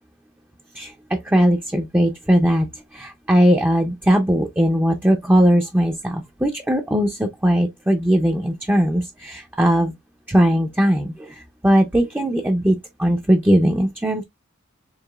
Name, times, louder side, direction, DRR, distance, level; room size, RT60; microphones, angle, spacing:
voice 1, 1.3-2.7 2.9-9.9 10.3-11.1 11.6-14.2, equal, 10° right, 0.5 m, -19 dB
4.7 x 3.0 x 2.3 m
head